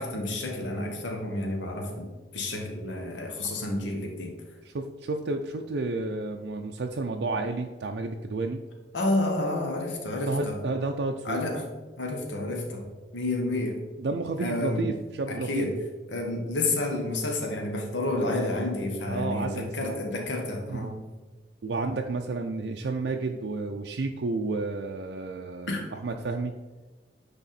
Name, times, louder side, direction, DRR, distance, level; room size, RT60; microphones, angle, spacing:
voice 1, 0.0-4.3 8.9-10.6 11.2-11.7 12.0-12.9 13.1-13.8 14.4-14.9 15.3-15.7 16.1-21.0 25.7-25.8, left 2 dB, 90° left, 1 dB, 1.2 m, -30 dB
voice 2, 4.6-8.6 10.3-11.4 14.0-15.7 19.1-20.0 20.7-20.9 21.6-26.5, right 3 dB, 70° right, 3 dB, 0.4 m, -31 dB
9.8 x 3.6 x 4.2 m, 1.3 s
head